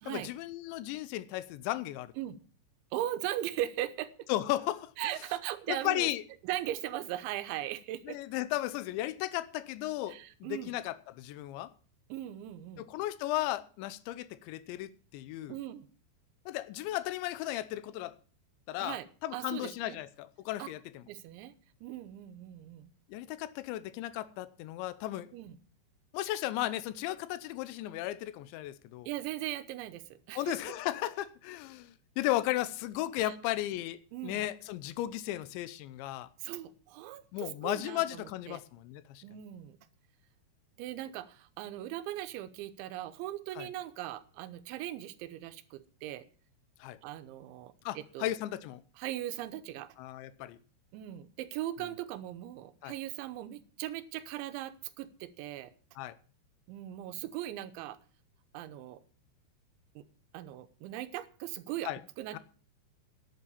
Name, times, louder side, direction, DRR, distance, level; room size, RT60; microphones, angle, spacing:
voice 1, 0.1-2.1 4.3-4.9 5.7-6.2 8.1-11.7 12.8-15.6 16.5-18.2 18.7-21.0 23.1-25.3 26.1-29.1 30.3-36.3 37.3-39.2 43.6-43.7 46.8-47.0 47.9-48.8 50.0-50.6 52.8-52.9 56.0-56.2 61.8-62.0 62.3-62.4, left 15 dB, 85° left, 3.1 m, -35 dB
voice 2, 2.9-4.1 5.0-6.1 6.4-8.2 10.1-10.7 12.1-12.9 15.5-15.9 18.8-19.1 19.3-20.0 20.6-20.7 21.1-21.5 21.8-22.9 25.3-25.6 29.1-30.6 33.2-33.4 34.1-34.5 36.4-38.6 39.2-39.8 40.8-46.3 47.0-48.3 49.0-49.9 50.9-55.7 56.7-58.0 58.5-59.0 60.0-60.1 60.3-61.9 62.2-62.4, right 13 dB, 85° right, 3.2 m, -39 dB
11.0 x 8.2 x 7.0 m
omnidirectional pair, 5.2 m